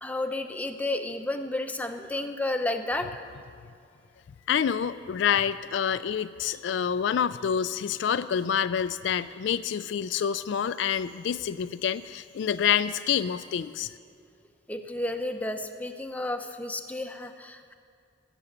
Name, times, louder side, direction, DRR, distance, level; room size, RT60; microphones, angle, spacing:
voice 1, 0.0-3.2 14.7-17.7, left 2 dB, 10° left, 5 dB, 0.6 m, -32 dB
voice 2, 4.5-13.9, left 8 dB, 65° left, 13 dB, 0.3 m, -27 dB
14.5 x 7.0 x 8.5 m, 2.5 s
head